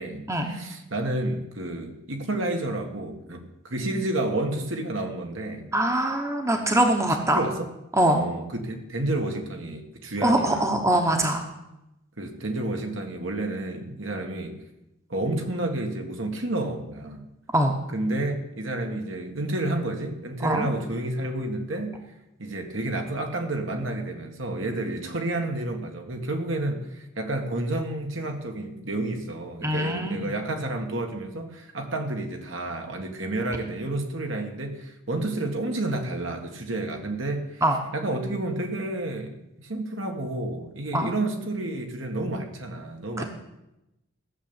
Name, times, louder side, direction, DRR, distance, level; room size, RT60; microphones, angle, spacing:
voice 1, 0.0-5.7 7.1-7.7 8.1-10.8 12.2-14.5 15.1-17.3 17.9-21.9 22.4-37.6 37.9-43.2, right 2 dB, 65° right, 4 dB, 1.9 m, -30 dB
voice 2, 5.7-7.4 8.0-8.2 10.2-11.4 17.5-17.7 20.4-20.7 29.6-30.3 37.6-37.8 40.9-41.1 43.2-43.3, right 1 dB, 15° right, 4 dB, 1.1 m, -23 dB
14.5 x 7.0 x 8.9 m, 0.91 s
head